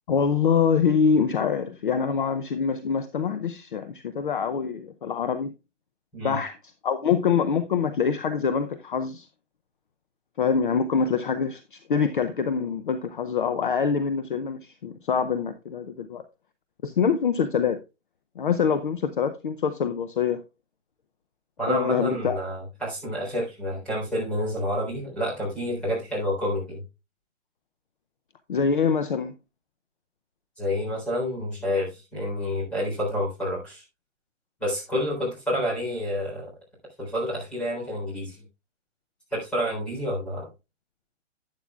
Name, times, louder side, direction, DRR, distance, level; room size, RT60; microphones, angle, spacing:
voice 1, 0.1-5.5 6.2-6.6 6.8-9.3 10.4-16.2 16.8-17.8 18.4-20.4 21.7-22.4 28.5-29.3, left 6 dB, 45° left, 0.6 m, -25 dB
voice 2, 21.6-26.8 30.6-33.8 34.6-36.5 37.0-38.4 39.3-40.5, equal, 5° left, 3.7 m, -29 dB
11.5 x 9.7 x 2.4 m
hypercardioid pair, 175°, 37 cm